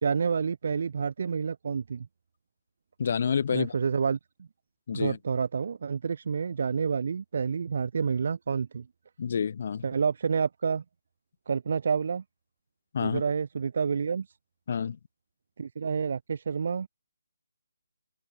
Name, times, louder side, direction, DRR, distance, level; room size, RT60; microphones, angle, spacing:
voice 1, 0.0-2.1 3.5-4.5 4.9-8.9 9.8-10.8 11.5-12.2 13.0-14.3 15.6-16.9, right 6 dB, 55° right, 0.4 m, -29 dB
voice 2, 3.0-3.7 4.9-5.2 9.2-9.8 12.9-13.2 14.7-15.0, left 7 dB, 50° left, 0.4 m, -28 dB
open air
figure-of-eight pair, 150°, 0 cm